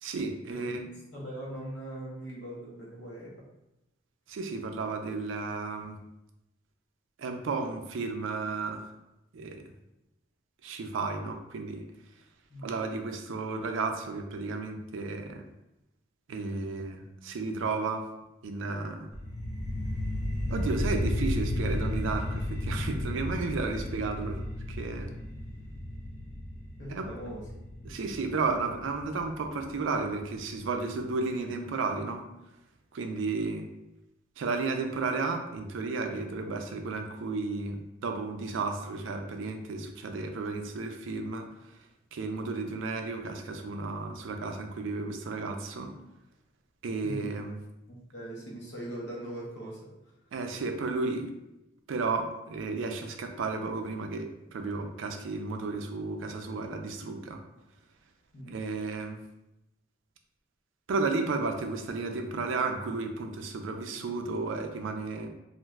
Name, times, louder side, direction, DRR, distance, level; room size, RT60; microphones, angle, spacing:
voice 1, 0.0-0.8 4.3-6.0 7.2-8.9 9.3-9.7 10.6-11.9 12.6-15.5 16.3-18.1 18.4-19.1 20.5-24.4 24.7-25.1 26.9-27.1 27.8-32.3 32.9-33.7 34.4-41.8 42.1-45.9 46.8-47.6 50.3-51.3 51.9-57.4 58.5-59.2 60.9-65.3, right 3 dB, 80° right, 5 dB, 0.4 m, -33 dB
voice 2, 1.1-3.3 12.5-12.7 22.7-23.0 26.8-27.5 27.8-28.0 47.0-47.4 47.9-49.9 58.3-58.6, right 1 dB, 60° left, -4 dB, 0.9 m, -41 dB
sound 1, 19.1-30.1, left 1 dB, 35° left, 0.4 m, -33 dB
2.5 x 2.3 x 3.1 m, 0.91 s
head